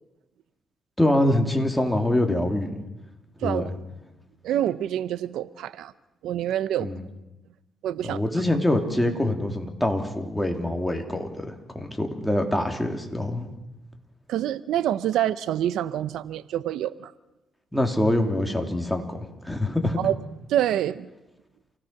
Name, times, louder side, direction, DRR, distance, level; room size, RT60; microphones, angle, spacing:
voice 1, 1.0-2.8 3.4-3.6 6.8-7.0 8.0-13.5 17.7-19.0 19.4-20.0, left 1 dB, 5° left, 3 dB, 3.2 m, -24 dB
voice 2, 4.4-5.9 6.2-6.9 7.8-8.2 14.3-17.1 20.0-20.1 20.5-21.1, right 11 dB, 80° right, 16 dB, 0.7 m, -26 dB
28.5 x 17.5 x 5.9 m, 0.99 s
cardioid pair, 90°, 0 cm